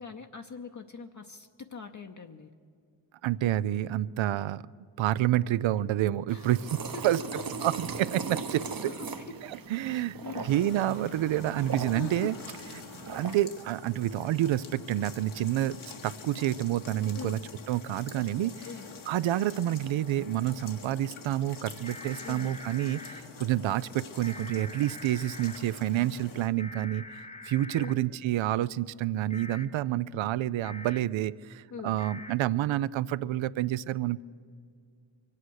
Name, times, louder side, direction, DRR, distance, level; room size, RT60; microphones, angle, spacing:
voice 1, 0.0-2.5 6.3-6.5 6.9-7.0 7.3-7.4 8.5-9.3 9.9-10.5 11.9-12.3 17.1-17.4 18.6-18.9 22.2-22.6 27.8-28.0 31.7-32.0, left 5 dB, 40° left, 4 dB, 0.8 m, -42 dB
voice 2, 3.2-4.6 5.0-6.8 7.0-7.2 7.6-8.7 9.7-10.2 10.4-12.3 13.1-17.4 17.7-18.7 19.1-27.0 27.4-34.2, right 13 dB, 75° right, 18 dB, 0.5 m, -28 dB
sound 1, 6.3-13.4, right 4 dB, 45° right, 1.1 m, -39 dB
sound 2, 10.5-26.5, left 5 dB, 80° left, 1.5 m, -47 dB
sound 3, 21.8-23.2 24.2-25.6 26.6-27.9 29.3-29.7 30.6-31.0 32.0-32.3, left 2 dB, 15° left, 1.0 m, -44 dB
23.5 x 8.7 x 6.4 m, 2.2 s
cardioid pair, 50°, 47 cm